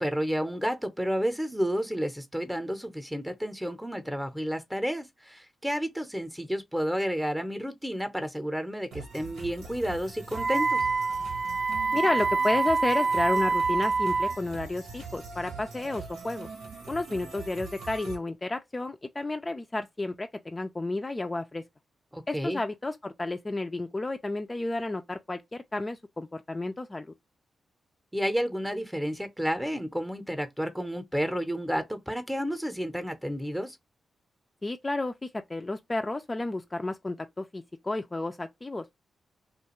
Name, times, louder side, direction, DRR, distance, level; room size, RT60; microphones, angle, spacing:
voice 1, 0.0-10.8 22.1-22.6 28.1-33.8, equal, 5° right, 0.7 m, -31 dB
sound 1, 8.9-18.2, right 4 dB, 85° right, 1.0 m, -43 dB
Wind instrument woodwind instrument, 10.3-14.4, right 4 dB, 45° right, 0.4 m, -26 dB
voice 2, 11.9-16.5 16.9-21.6 22.3-27.1 34.6-38.9, left 2 dB, 30° left, 0.3 m, -31 dB
2.4 x 2.3 x 2.9 m
supercardioid pair, 45°, 0 cm